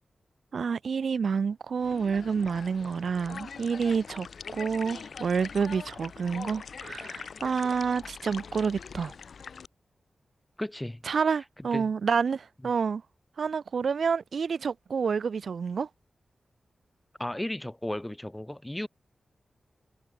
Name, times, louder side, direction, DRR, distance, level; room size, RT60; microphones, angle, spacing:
voice 1, 0.5-4.3 4.5-9.1 11.0-13.0 13.4-15.9, right 6 dB, 70° right, 0.8 m, -28 dB
sound 1, 1.8-9.7, left 6 dB, 70° left, 0.8 m, -43 dB
voice 2, 10.6-11.0 11.6-11.9 17.2-18.9, left 1 dB, 10° left, 0.5 m, -34 dB
wide cardioid pair, 145°, 0 cm